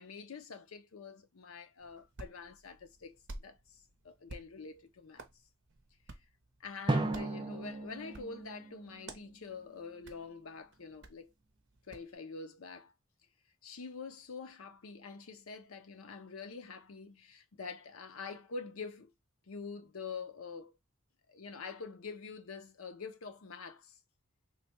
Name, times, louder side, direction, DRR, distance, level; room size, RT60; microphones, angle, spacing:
voice 1, 0.0-5.2 6.6-11.3 11.9-12.9 13.6-19.1 19.5-20.7 21.3-23.9, left 4 dB, 75° left, 0.6 m, -46 dB
Hands, 1.8-12.1, right 2 dB, 55° right, 0.7 m, -54 dB
Drum, 6.9-9.6, right 2 dB, 20° right, 0.5 m, -36 dB
3.2 x 2.2 x 4.3 m
head